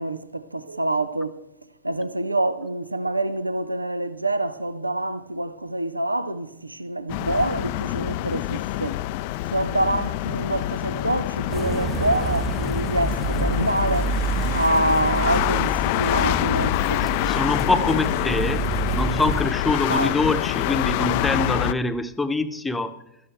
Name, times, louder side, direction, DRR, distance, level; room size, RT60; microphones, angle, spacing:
voice 1, 0.0-1.4 1.8-9.0 9.5-17.1 17.7-17.9 19.9-20.1, right 1 dB, 85° right, 0.5 m, -26 dB
sound 1, 7.1-21.7, left 16 dB, 45° left, 0.4 m, -26 dB
sound 2, 11.5-19.5, right 6 dB, 20° right, 0.5 m, -29 dB
sound 3, 13.9-19.4, right 4 dB, 60° right, 5.3 m, -42 dB
voice 2, 17.3-18.6 18.9-22.9, left 2 dB, 10° left, 0.9 m, -24 dB
16.5 x 13.0 x 3.4 m
figure-of-eight pair, 90°, 0 cm